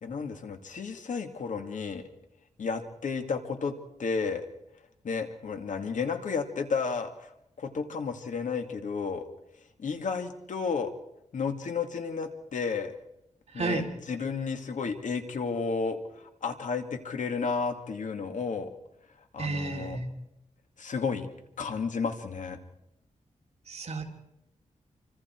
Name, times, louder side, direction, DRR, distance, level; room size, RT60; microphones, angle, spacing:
voice 1, 0.0-2.1 2.6-3.7 4.0-4.4 5.0-7.3 7.6-9.2 9.8-10.9 11.3-13.0 13.5-18.7 19.3-20.0 20.8-21.3 21.6-22.6, left 5 dB, 75° left, 5 dB, 2.5 m, -32 dB
voice 2, 13.6-13.9 19.4-20.1 23.7-24.0, right 3 dB, 55° right, 2 dB, 3.4 m, -31 dB
28.0 x 25.5 x 4.7 m, 0.83 s
wide cardioid pair, 145°, 13 cm